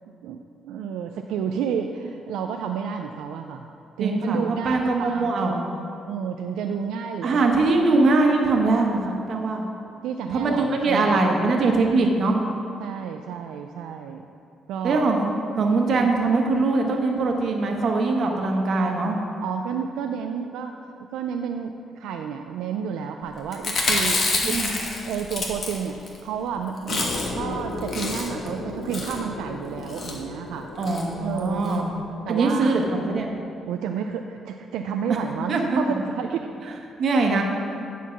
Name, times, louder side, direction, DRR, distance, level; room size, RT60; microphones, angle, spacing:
voice 1, 0.2-3.7 4.0-5.6 6.1-7.8 10.0-11.2 12.8-14.3 14.7-15.1 19.4-31.9 32.2-32.8 33.7-36.5, right 7 dB, 90° right, 4 dB, 0.3 m, -31 dB
voice 2, 4.0-5.6 7.2-9.6 10.3-12.4 14.8-15.2 15.5-19.2 24.4-24.7 30.8-31.9 32.3-33.3 35.1-35.2 35.5-35.8 37.0-37.4, right 3 dB, 55° right, 1 dB, 1.2 m, -22 dB
Chewing mastication, 23.5-26.2 26.5-26.6 26.8-27.5 27.8-28.5 28.9-29.2 29.9-30.2 30.8-31.0 31.4-31.5 31.7-31.8, left 3 dB, 50° left, 1.4 m, -27 dB
sound 1, 26.9-33.2, left 2 dB, 85° left, 1.4 m, -36 dB
10.0 x 4.6 x 5.8 m, 2.6 s
cardioid pair, 90°, 0 cm